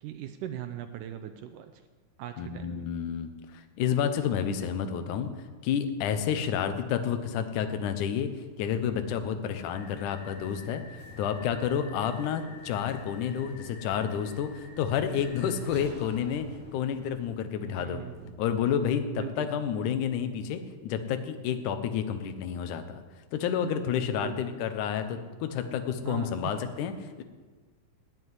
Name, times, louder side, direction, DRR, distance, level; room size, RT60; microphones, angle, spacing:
voice 1, 0.0-1.7 2.2-2.7 17.7-18.3 19.2-19.5 24.1-24.4 26.1-26.3, right 11 dB, 80° right, 8 dB, 1.9 m, -39 dB
voice 2, 2.4-5.3 5.6-8.3 8.6-10.8 11.2-16.5 16.7-18.0 18.4-23.0 23.3-27.2, left 8 dB, 70° left, 8 dB, 2.2 m, -30 dB
sound 1, 8.2-18.3, left 2 dB, 55° left, 5.1 m, -52 dB
sound 2, 9.6-17.1, left 1 dB, 15° right, 0.4 m, -50 dB
10.0 x 7.7 x 9.6 m, 1.4 s
omnidirectional pair, 4.1 m